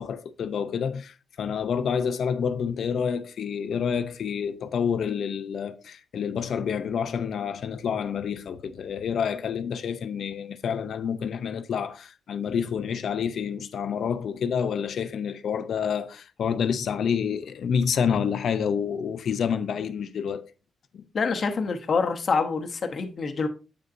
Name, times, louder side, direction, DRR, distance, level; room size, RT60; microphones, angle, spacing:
voice 1, 0.0-20.5 20.9-21.0, left 7 dB, 65° left, 0.5 m, -28 dB
voice 2, 21.1-23.5, left 4 dB, 45° left, 0.8 m, -26 dB
7.8 x 6.6 x 2.6 m
wide cardioid pair, 145°, 0 cm